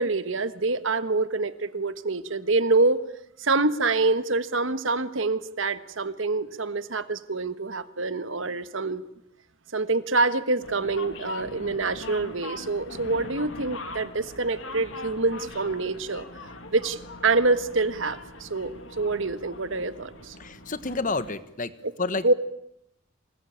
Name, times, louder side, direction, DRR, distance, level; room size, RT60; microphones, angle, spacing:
voice 1, 0.0-3.0 3.4-9.0 9.7-16.3 16.7-20.3 22.2-22.3, right 3 dB, 65° right, 13 dB, 1.3 m, -26 dB
sound 1, 10.6-21.3, left 2 dB, 65° left, 2.3 m, -41 dB
voice 2, 20.4-21.7 22.0-22.3, left 3 dB, 40° left, 13 dB, 1.3 m, -29 dB
26.5 x 19.5 x 8.8 m, 0.82 s
head